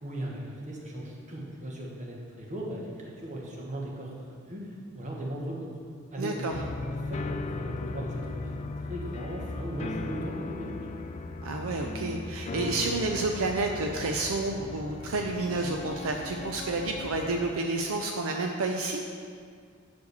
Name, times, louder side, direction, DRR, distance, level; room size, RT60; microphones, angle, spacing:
voice 1, 0.0-4.7 4.9-5.8 6.1-6.8 7.1-10.9, right 1 dB, 35° right, -2 dB, 1.3 m, -38 dB
voice 2, 6.2-6.6 11.4-19.0, right 2 dB, 75° right, 3 dB, 0.5 m, -30 dB
sound 1, 6.5-17.5, left 3 dB, 30° left, 0.3 m, -37 dB
6.4 x 4.8 x 6.7 m, 2.1 s
head